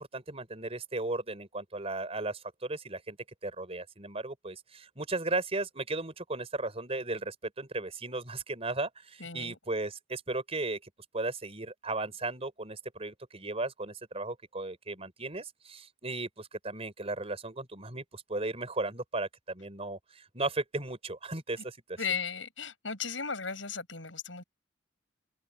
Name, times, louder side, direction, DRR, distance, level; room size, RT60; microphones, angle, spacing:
voice 1, 0.0-3.2 3.4-22.0, right 2 dB, 30° right, 4.5 m, -36 dB
voice 2, 9.2-9.6 21.6-21.7 22.0-24.4, left 6 dB, 80° left, 7.1 m, -36 dB
head